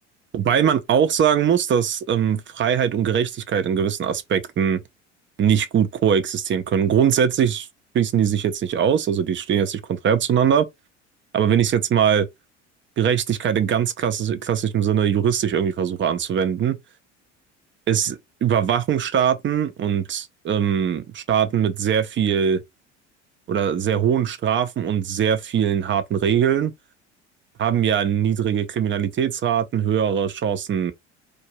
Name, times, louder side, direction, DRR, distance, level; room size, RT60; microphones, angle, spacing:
voice 1, 0.3-4.8 5.4-7.7 7.9-10.7 11.3-12.3 13.0-16.8 17.9-22.6 23.5-26.7 27.6-30.9, right 8 dB, 35° right, 0.8 m, -21 dB
4.6 x 2.7 x 3.0 m
figure-of-eight pair, 65°, 36 cm